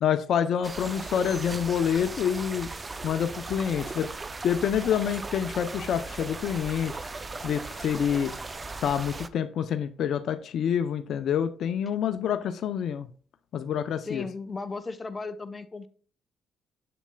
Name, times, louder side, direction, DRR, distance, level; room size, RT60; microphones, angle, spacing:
voice 1, 0.0-2.7 3.0-4.1 4.4-6.9 7.4-8.3 8.8-13.1 13.5-14.3, left 8 dB, 65° left, 10 dB, 0.6 m, -27 dB
sound 1, 0.6-9.3, right 3 dB, 25° right, 0.6 m, -38 dB
voice 2, 14.0-15.9, left 3 dB, 30° left, 10 dB, 0.8 m, -36 dB
7.6 x 7.0 x 2.3 m, 0.43 s
supercardioid pair, 70°, 0 cm